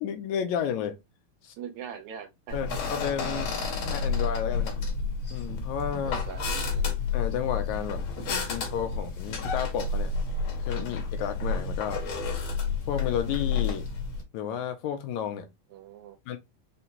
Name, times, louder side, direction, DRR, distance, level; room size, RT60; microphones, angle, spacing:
voice 1, 0.0-1.0 1.4-1.5 2.5-3.5 3.8-4.8 5.3-6.2 7.1-8.0 8.5-10.1 10.6-12.0 12.9-13.9 14.3-15.5 16.3-16.4, left 8 dB, 80° left, 1.8 m, -32 dB
voice 2, 1.6-2.6 6.0-7.0 15.7-16.2, right 8 dB, 75° right, 1.9 m, -42 dB
sound 1, 2.5-14.2, left 4 dB, 60° left, 1.4 m, -30 dB
5.6 x 2.2 x 2.8 m
omnidirectional pair, 3.6 m